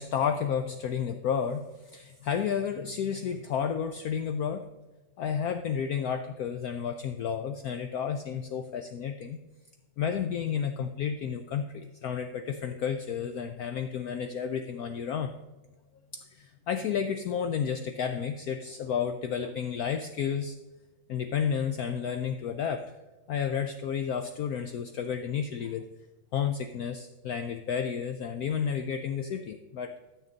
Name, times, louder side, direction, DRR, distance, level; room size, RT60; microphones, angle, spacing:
voice 1, 0.0-4.7 5.2-9.4 10.0-15.3 16.1-20.5 21.1-22.9 23.3-25.8 26.3-29.9, left 7 dB, 70° left, 8 dB, 0.9 m, -31 dB
13.0 x 6.6 x 3.9 m, 1.1 s
omnidirectional pair, 2.0 m